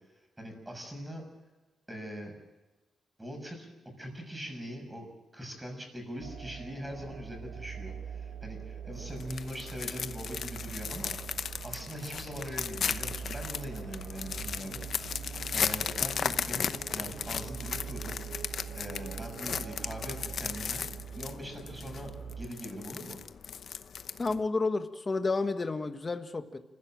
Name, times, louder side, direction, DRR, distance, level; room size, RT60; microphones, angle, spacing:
voice 1, 0.4-1.2 1.9-2.3 3.2-3.7 4.0-5.1 5.3-11.2 11.6-18.2 18.7-20.8 21.2-23.2, equal, 10° right, 3 dB, 6.5 m, -42 dB
sound 1, 6.2-22.5, right 7 dB, 70° right, 1.3 m, -43 dB
sound 2, 8.9-24.5, left 7 dB, 60° left, 0.8 m, -36 dB
voice 2, 24.2-26.6, left 3 dB, 25° left, 8 dB, 1.5 m, -30 dB
28.5 x 15.5 x 8.9 m, 1.1 s
wide cardioid pair, 145°, 0 cm